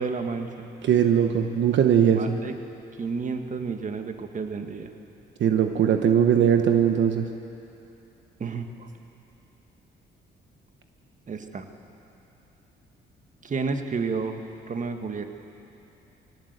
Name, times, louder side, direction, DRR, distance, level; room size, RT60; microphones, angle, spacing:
voice 1, 0.0-0.7 2.1-2.6 3.0-4.9 8.4-8.9 11.3-11.7 13.4-14.4 14.7-15.3, right 4 dB, 40° right, 6 dB, 1.6 m, -31 dB
voice 2, 0.8-2.4 5.4-7.3, right 8 dB, 70° right, 6 dB, 1.1 m, -20 dB
22.0 x 17.5 x 8.1 m, 2.9 s
cardioid pair, 90°, 20 cm